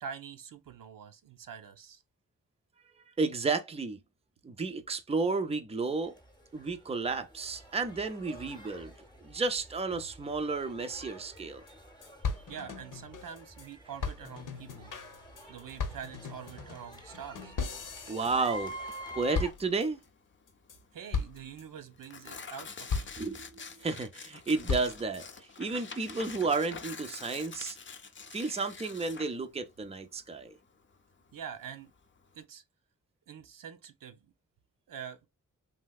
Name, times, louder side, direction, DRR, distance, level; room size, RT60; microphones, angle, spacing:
voice 1, 0.0-2.0 12.5-14.9 15.5-17.5 20.9-23.1 31.3-31.9 32.3-32.6 33.3-34.3 34.9-35.3, right 7 dB, 80° right, 0.6 m, -45 dB
voice 2, 3.2-4.0 4.4-6.1 6.5-8.9 9.2-11.6 18.1-18.7 19.1-20.0 23.2-25.3 25.6-27.8 28.3-30.6, right 3 dB, 20° right, 0.5 m, -32 dB
sound 1, 6.0-19.5, right 1 dB, 15° left, 0.8 m, -48 dB
sound 2, 11.4-11.5 11.7-11.8 12.0-13.7 14.0-19.0 19.3-20.0 20.5-20.8 21.1-21.6 22.0-22.5 22.9-23.8 24.3-25.2, left 4 dB, 70° left, 0.8 m, -37 dB
Tearing, 18.2-32.4, left 5 dB, 35° left, 0.5 m, -48 dB
3.2 x 2.7 x 2.3 m
wide cardioid pair, 90°, 32 cm